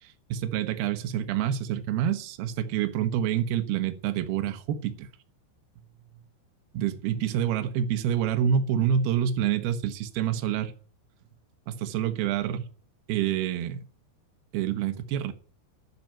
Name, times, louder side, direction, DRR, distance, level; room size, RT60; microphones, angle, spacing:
voice 1, 0.0-5.1 6.7-10.7 11.7-12.7 13.1-13.9 14.5-15.3, right 9 dB, 70° right, 2.5 m, -27 dB
12.5 x 5.9 x 8.9 m
omnidirectional pair, 5.7 m